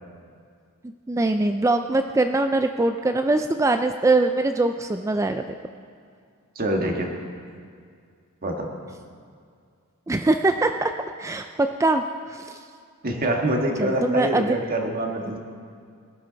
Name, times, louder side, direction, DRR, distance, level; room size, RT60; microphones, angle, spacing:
voice 1, 1.1-5.4 10.1-10.9 11.2-12.6 13.8-14.6, right 2 dB, 15° right, 6 dB, 0.3 m, -22 dB
voice 2, 6.5-7.1 8.4-8.7 13.0-15.4, right 1 dB, 40° right, 2 dB, 1.6 m, -25 dB
19.0 x 12.0 x 3.9 m, 2.2 s
head